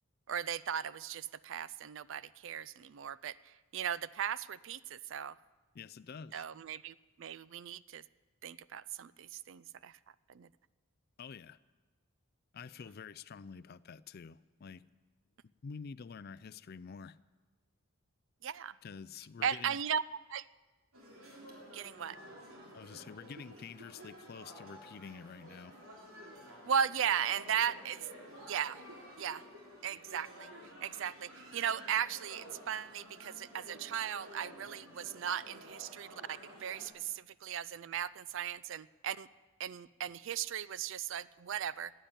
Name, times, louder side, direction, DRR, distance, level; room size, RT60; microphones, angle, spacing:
voice 1, 0.3-3.3 3.7-5.3 6.3-8.0 8.4-9.9 10.3-10.5 18.4-18.7 19.4-20.0 20.3-20.4 21.7-22.2 26.7-28.1 28.5-28.8 29.2-29.4 29.8-30.5 30.8-39.3 39.6-41.9, right 8 dB, 60° right, 19 dB, 0.4 m, -37 dB
voice 2, 5.7-6.4 11.2-11.6 12.5-14.8 15.4-17.2 18.8-19.8 22.7-25.8, left 5 dB, 45° left, 17 dB, 0.4 m, -48 dB
sound 1, 20.9-36.9, equal, 75° right, 3.3 m, -52 dB
15.5 x 10.0 x 9.0 m, 1.3 s
head